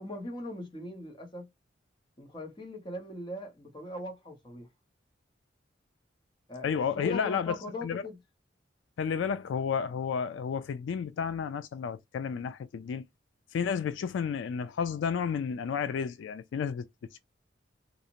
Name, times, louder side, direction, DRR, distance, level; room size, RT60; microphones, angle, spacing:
voice 1, 0.0-1.5 2.2-4.7 6.5-8.2, left 1 dB, 25° left, 0.7 m, -40 dB
voice 2, 6.6-7.6 7.8-8.1 9.0-13.0 13.5-17.2, left 6 dB, 80° left, 0.3 m, -31 dB
2.5 x 2.0 x 2.8 m
head